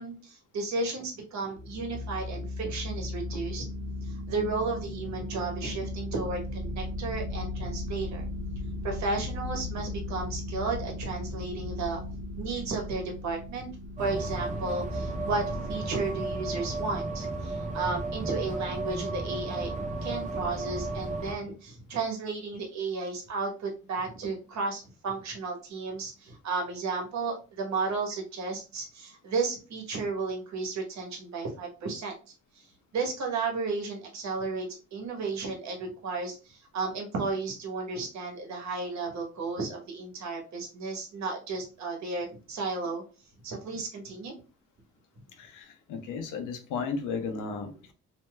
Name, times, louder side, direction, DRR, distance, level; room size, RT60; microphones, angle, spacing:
voice 1, 0.0-3.6 4.0-8.3 8.8-12.0 12.4-13.7 14.0-15.4 15.7-32.1 32.5-32.7 32.9-43.0 43.4-44.3, right 3 dB, 65° right, 2 dB, 1.2 m, -33 dB
sound 1, 1.6-17.8, left 2 dB, 80° right, 0.8 m, -37 dB
sound 2, 14.0-21.3, right 2 dB, 25° right, 0.6 m, -34 dB
voice 2, 45.4-47.9, left 5 dB, 85° left, 6 dB, 0.7 m, -34 dB
3.1 x 2.8 x 2.3 m, 0.34 s
cardioid pair, 90°, 30 cm